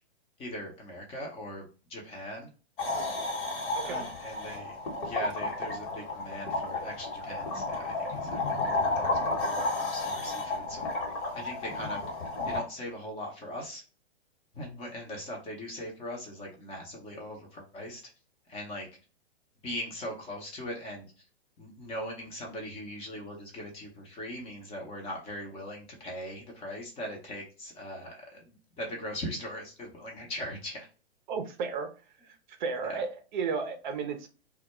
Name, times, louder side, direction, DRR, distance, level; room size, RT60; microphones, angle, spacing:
voice 1, 0.4-1.6 1.9-2.5 3.8-4.8 5.0-10.9 11.3-12.0 12.5-13.8 14.5-18.0 18.5-18.9 19.6-21.1 21.6-30.9 32.8-33.0, equal, 20° left, 0 dB, 0.6 m, -40 dB
sound 1, 2.8-12.6, left 2 dB, 55° left, 1.1 m, -32 dB
voice 2, 3.7-4.1 31.3-31.9 32.6-34.3, right 5 dB, 50° right, 6 dB, 0.5 m, -33 dB
2.2 x 2.1 x 2.9 m, 0.35 s
hypercardioid pair, 120°, 32 cm